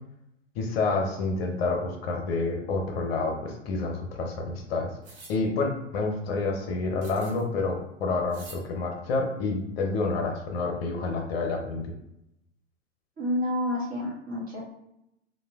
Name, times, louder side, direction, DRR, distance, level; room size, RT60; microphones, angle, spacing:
voice 1, 0.6-4.9 5.3-11.9, left 3 dB, 55° left, 2 dB, 0.7 m, -28 dB
sound 1, 5.0-5.4 7.0-7.5 8.3-8.6, right 3 dB, 50° right, 1.2 m, -47 dB
voice 2, 13.2-14.6, left 1 dB, 25° right, -4 dB, 1.0 m, -29 dB
3.1 x 2.2 x 2.3 m, 0.82 s
figure-of-eight pair, 100°, 37 cm